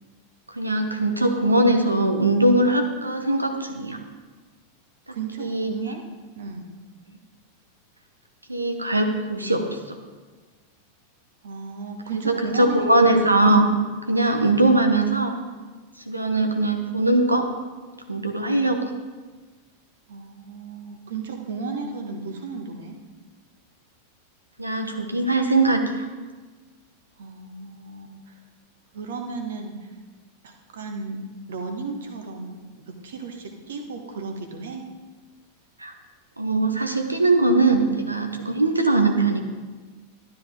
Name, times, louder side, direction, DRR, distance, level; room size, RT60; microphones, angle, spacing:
voice 1, 0.5-4.0 5.1-5.7 8.5-10.0 12.3-13.7 14.1-15.4 16.1-17.5 18.1-18.8 24.6-26.0 35.8-35.9 36.4-39.4, right 2 dB, 85° right, 5 dB, 1.0 m, -21 dB
voice 2, 5.1-6.1 6.3-6.7 11.4-13.4 20.1-23.0 27.2-28.4 28.9-29.9 30.4-34.9, right 4 dB, 60° right, 4 dB, 1.4 m, -34 dB
12.5 x 10.5 x 3.7 m, 1.4 s
figure-of-eight pair, 90°, 0 cm